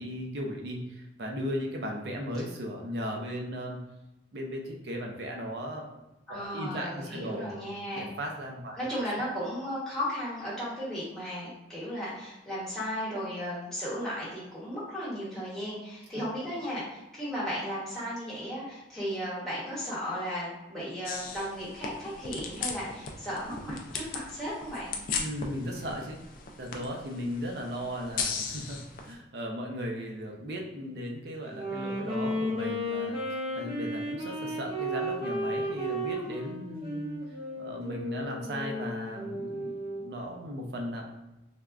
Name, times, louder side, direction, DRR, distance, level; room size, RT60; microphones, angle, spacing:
voice 1, 0.0-3.8 4.3-6.0 6.3-7.5 7.9-8.8 16.1-16.3 25.2-26.2 26.6-37.2 37.6-41.0, equal, 60° right, 1 dB, 0.5 m, -36 dB
voice 2, 6.3-8.1 8.8-24.9, equal, 5° left, -9 dB, 1.0 m, -35 dB
sound 1, 21.1-29.1, left 5 dB, 45° left, 0.3 m, -37 dB
Wind instrument woodwind instrument, 31.5-40.1, equal, 30° right, 0.8 m, -34 dB
3.4 x 2.1 x 2.4 m, 0.98 s
head